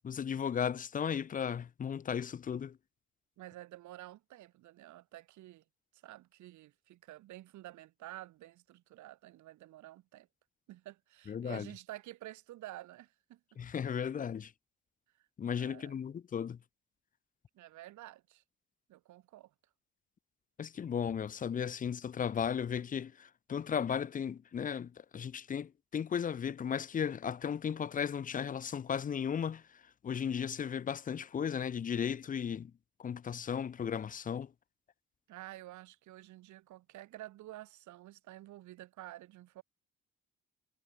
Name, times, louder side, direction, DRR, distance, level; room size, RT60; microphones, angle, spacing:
voice 1, 0.0-2.8 11.3-11.7 13.6-14.5 15.4-16.6 20.6-29.6 30.0-32.7 33.0-34.5, left 7 dB, 30° left, 0.4 m, -35 dB
voice 2, 3.4-5.6 6.0-10.3 10.7-13.4 15.5-15.9 17.5-18.4 18.9-19.5 35.3-39.6, right 15 dB, 70° right, 0.7 m, -50 dB
cardioid pair, 90°, 30 cm